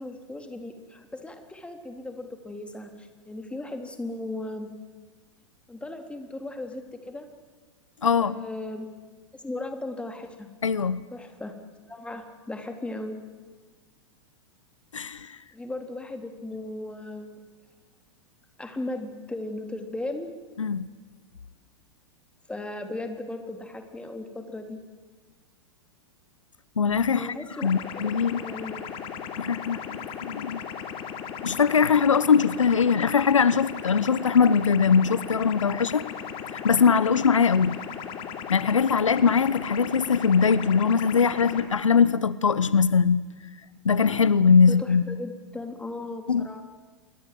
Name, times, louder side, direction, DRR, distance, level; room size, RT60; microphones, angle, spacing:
voice 1, 0.0-4.7 5.7-7.3 8.2-8.9 9.3-10.5 11.1-11.5 11.9-13.2 15.5-17.5 18.6-20.3 22.5-24.8 27.1-28.9 44.7-46.6, left 2 dB, 5° left, 3.6 m, -37 dB
voice 2, 8.0-8.4 10.6-11.0 14.9-15.4 20.6-20.9 26.8-27.4 27.6-28.4 29.4-30.6 31.4-36.1 36.5-37.8 38.5-43.3 43.8-45.2 46.3-46.6, left 6 dB, 85° left, 0.9 m, -21 dB
sound 1, 27.6-41.6, left 8 dB, 35° left, 3.5 m, -37 dB
27.5 x 23.0 x 7.8 m
hypercardioid pair, 100°, 16 cm